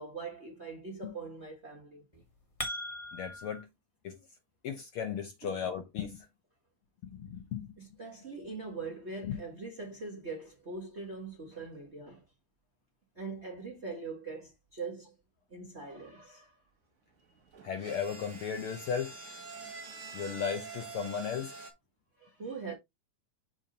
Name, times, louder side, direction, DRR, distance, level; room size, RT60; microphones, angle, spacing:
voice 1, 0.0-2.1 5.4-5.6 7.8-12.3 13.1-15.1 15.5-16.6 22.2-22.7, right 4 dB, 75° right, 0.6 m, -42 dB
sound 1, 2.1-3.6, equal, 25° left, 0.8 m, -39 dB
voice 2, 3.1-3.7 4.0-4.2 4.6-6.2 7.1-7.7 9.2-9.4 17.6-19.1 20.1-21.5, left 7 dB, 75° left, 1.2 m, -35 dB
sound 2, 17.4-21.7, right 3 dB, 50° right, 0.9 m, -46 dB
7.0 x 2.8 x 5.1 m
omnidirectional pair, 3.7 m